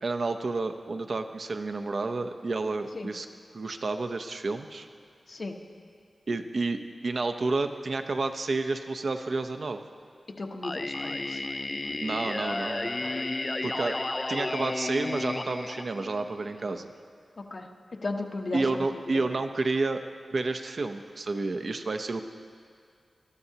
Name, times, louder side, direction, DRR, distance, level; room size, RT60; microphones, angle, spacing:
voice 1, 0.0-3.3 3.5-4.9 6.3-9.8 12.0-13.1 13.6-14.0 14.3-16.9 18.5-20.0 20.3-22.2, right 3 dB, 65° right, 7 dB, 0.7 m, -30 dB
voice 2, 10.4-11.4 13.0-13.2 17.4-17.7 18.0-18.9, left 2 dB, 60° left, 3 dB, 1.1 m, -35 dB
Singing, 10.6-16.6, left 2 dB, 35° left, 0.4 m, -32 dB
21.5 x 12.5 x 2.9 m, 2.3 s
cardioid pair, 65°, 0 cm